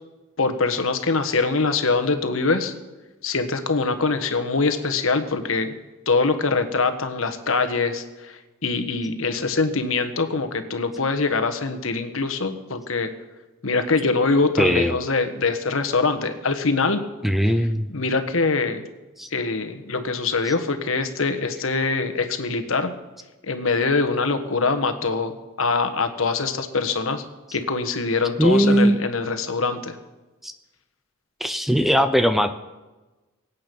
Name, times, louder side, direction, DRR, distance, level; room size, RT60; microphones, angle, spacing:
voice 1, 0.4-2.7 3.2-5.7 6.1-13.1 13.6-17.0 17.9-18.8 19.3-22.9 23.4-27.2 27.5-30.0, left 4 dB, 70° left, 7 dB, 1.3 m, -23 dB
voice 2, 14.6-15.0 17.2-17.9 19.2-19.3 28.4-29.0 30.4-30.5 31.4-32.5, equal, ahead, 9 dB, 0.6 m, -19 dB
24.0 x 8.5 x 5.4 m, 1.1 s
head